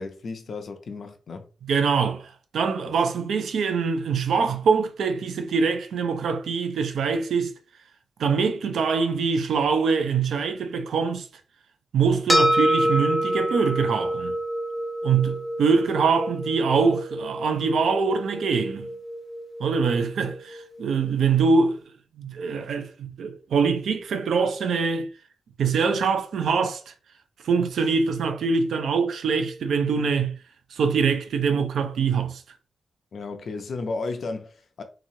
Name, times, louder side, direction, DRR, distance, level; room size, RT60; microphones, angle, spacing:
voice 1, 0.0-1.4 33.1-34.8, left 3 dB, 55° left, 0.5 m, -33 dB
voice 2, 1.6-7.5 8.2-11.3 11.9-14.4 15.0-18.9 19.6-21.8 22.2-25.1 25.6-26.9 27.4-30.4 30.7-32.4, right 5 dB, 80° right, 0.4 m, -24 dB
sound 1, 12.3-20.9, equal, ahead, 0.7 m, -27 dB
3.0 x 2.4 x 2.7 m
wide cardioid pair, 160°, 0 cm